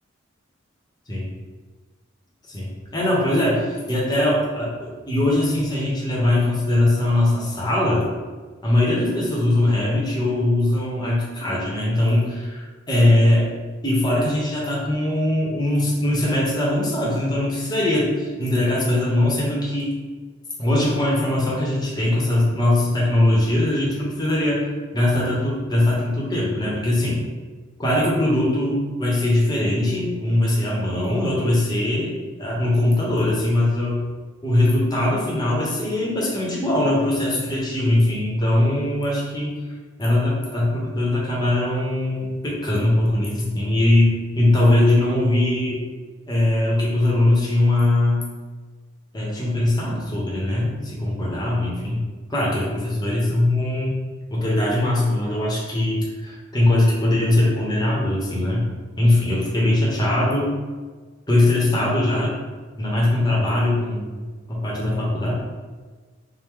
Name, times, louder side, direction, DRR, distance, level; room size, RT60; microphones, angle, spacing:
voice 1, 2.5-8.1 8.6-13.5 13.8-19.9 20.6-24.7 24.9-27.2 27.8-32.1 32.4-34.0 34.4-39.6 40.0-45.8 46.3-48.2 49.1-54.0 54.3-58.7 59.0-60.6 61.3-62.4 62.8-65.3, left 1 dB, 20° left, -5 dB, 0.8 m, -21 dB
4.5 x 2.1 x 3.6 m, 1.4 s
head